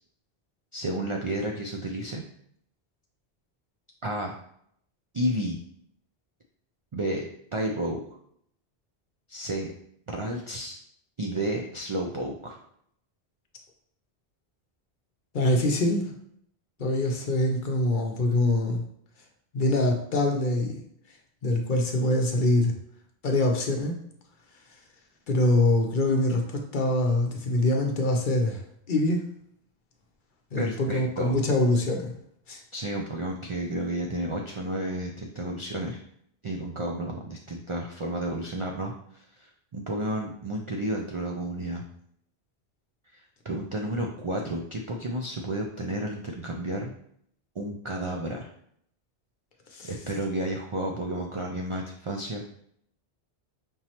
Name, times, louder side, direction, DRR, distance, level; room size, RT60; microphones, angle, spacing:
voice 1, 0.7-2.2 4.0-4.4 5.1-5.6 6.9-7.3 7.5-8.0 9.3-9.7 10.1-10.8 11.2-12.6 30.6-31.4 32.7-36.0 36.4-41.8 43.1-46.9 47.6-48.5 49.8-52.4, right 1 dB, 55° right, 1 dB, 0.3 m, -31 dB
voice 2, 15.3-16.1 16.8-18.8 19.5-20.8 21.4-22.7 23.2-24.0 25.3-28.6 28.9-29.3 30.5-32.1 32.5-32.6 49.7-49.9, left 1 dB, 55° left, 2 dB, 0.7 m, -24 dB
5.2 x 3.1 x 2.9 m, 0.69 s
omnidirectional pair, 1.1 m